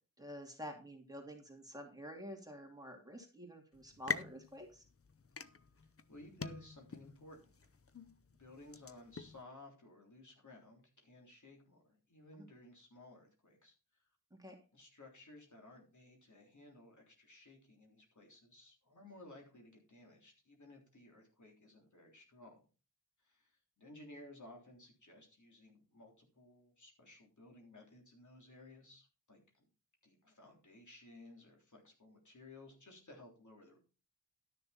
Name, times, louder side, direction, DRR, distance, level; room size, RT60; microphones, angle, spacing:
voice 1, 0.2-4.8 12.4-12.5 14.3-14.6, equal, 10° right, 2 dB, 2.6 m, -49 dB
sound 1, 3.7-9.4, left 5 dB, 45° left, 0.7 m, -46 dB
voice 2, 6.1-7.5 8.4-14.0 14.7-22.6 23.2-29.6 30.0-33.8, left 2 dB, 60° left, 0 dB, 3.5 m, -57 dB
12.5 x 6.7 x 4.3 m, 0.34 s
wide cardioid pair, 65°, 33 cm